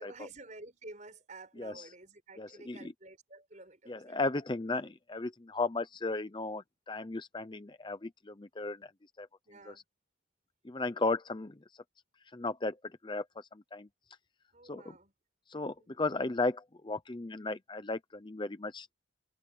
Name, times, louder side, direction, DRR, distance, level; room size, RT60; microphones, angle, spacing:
voice 1, 0.0-4.2 5.7-5.8 9.4-9.8 14.5-15.1 15.7-16.0, right 2 dB, 40° right, 5.8 m, -51 dB
voice 2, 2.4-2.9 3.9-8.9 9.2-9.3 9.7-9.8 10.6-11.6 12.3-12.8 13.0-13.9 14.7-14.9 15.5-18.9, left 3 dB, 25° left, 0.6 m, -35 dB
open air
head